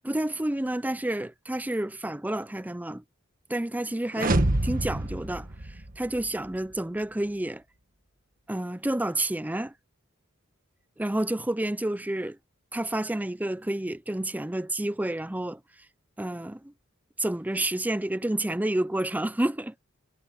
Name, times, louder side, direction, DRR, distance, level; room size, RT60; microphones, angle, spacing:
voice 1, 0.0-3.0 3.5-4.4 4.6-7.6 8.5-9.7 11.0-12.4 12.7-15.6 16.2-16.7 17.2-19.7, right 1 dB, 10° right, 0.5 m, -29 dB
sound 1, 4.1-6.3, right 1 dB, 40° right, 1.5 m, -27 dB
head